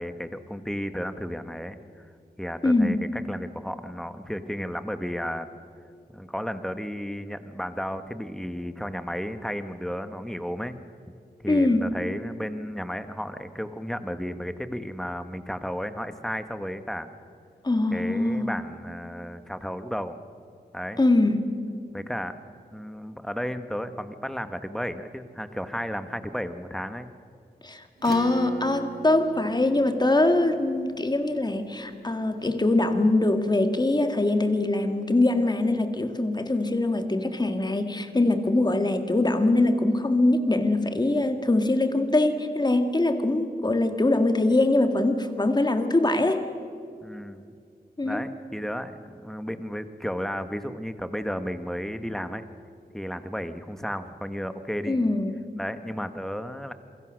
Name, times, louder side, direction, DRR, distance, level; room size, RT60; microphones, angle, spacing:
voice 1, 0.0-1.8 2.4-5.5 6.1-10.8 11.4-17.1 17.9-20.2 20.7-21.0 21.9-22.4 22.7-27.1 47.0-47.5 48.0-52.5 52.9-55.0 55.6-56.7, equal, 5° left, 9 dB, 1.3 m, -33 dB
voice 2, 2.6-3.0 11.5-11.9 17.6-18.5 21.0-21.6 27.6-46.5 48.0-48.2 54.9-55.3, left 2 dB, 25° left, 7 dB, 1.9 m, -23 dB
Acoustic guitar / Strum, 28.0-32.9, right 5 dB, 70° right, 1.1 m, -39 dB
28.0 x 23.5 x 6.4 m, 2.4 s
wide cardioid pair, 105°, 16 cm